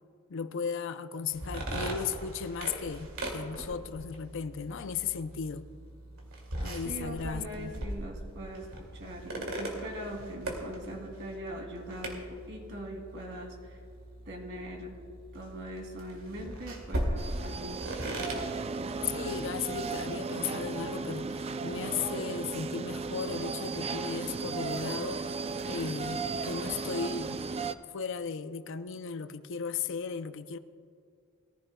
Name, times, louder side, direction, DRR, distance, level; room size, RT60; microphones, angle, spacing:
voice 1, 0.3-5.7 6.6-7.7 19.0-25.2 25.6-27.4 27.9-30.6, left 6 dB, 60° left, 0.5 m, -36 dB
sound 1, 1.3-19.8, right 1 dB, 80° right, 2.4 m, -39 dB
voice 2, 6.8-13.8 14.3-15.0 15.3-18.3, equal, 60° right, 2.6 m, -42 dB
sound 2, 17.2-27.7, right 4 dB, 30° right, 0.4 m, -35 dB
21.5 x 14.5 x 2.3 m
head